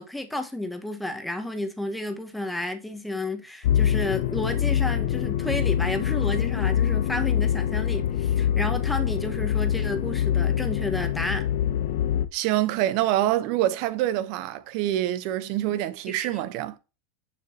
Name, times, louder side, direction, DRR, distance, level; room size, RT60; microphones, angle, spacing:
voice 1, 0.0-11.5 15.7-15.8 16.3-16.4, left 1 dB, 5° left, 1.3 m, -31 dB
sound 1, 3.6-12.2, left 10 dB, 70° left, 0.5 m, -24 dB
voice 2, 12.3-16.8, right 13 dB, 60° right, 0.8 m, -26 dB
6.7 x 6.5 x 2.8 m
hypercardioid pair, 100°, 0 cm